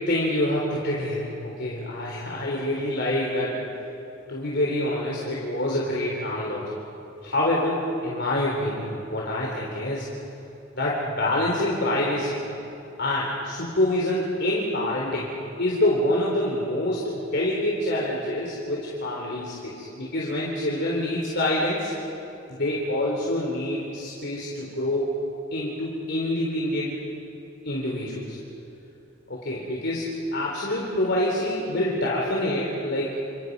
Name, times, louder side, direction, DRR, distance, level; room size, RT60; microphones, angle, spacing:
voice 1, 0.0-3.6 4.3-6.6 7.2-10.0 10.7-12.4 13.0-15.3 15.6-21.9 22.5-25.1 25.5-27.0 27.6-28.4 29.3-33.2, left 1 dB, 60° left, -4 dB, 3.9 m, -26 dB
30.0 x 28.5 x 5.5 m, 2.9 s
head